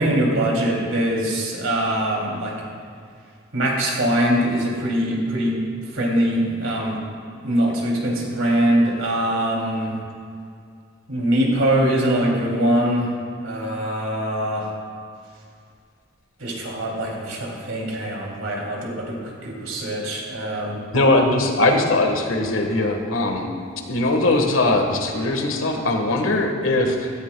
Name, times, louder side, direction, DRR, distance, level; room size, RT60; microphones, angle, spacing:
voice 1, 0.0-2.6 3.5-5.6 5.9-7.0 7.4-10.0 11.1-13.1 13.4-14.7 16.4-20.8, right 1 dB, 85° right, -2 dB, 2.8 m, -22 dB
voice 2, 20.9-23.5 23.9-27.1, left 2 dB, 90° left, 3 dB, 1.4 m, -20 dB
16.5 x 14.5 x 2.3 m, 2.3 s
head